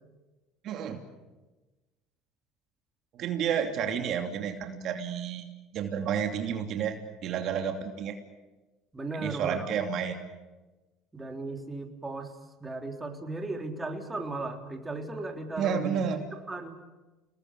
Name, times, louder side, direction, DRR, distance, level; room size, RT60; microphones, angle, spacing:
voice 1, 0.6-1.0 3.2-5.4 5.7-7.0 7.2-8.2 9.1-10.2 15.6-16.2, right 7 dB, 55° right, 5 dB, 2.8 m, -30 dB
voice 2, 8.9-9.7 11.1-12.3 12.6-16.0 16.5-16.8, right 2 dB, 15° right, 3 dB, 3.6 m, -36 dB
30.0 x 20.0 x 8.4 m, 1.2 s
supercardioid pair, 95°, 0 cm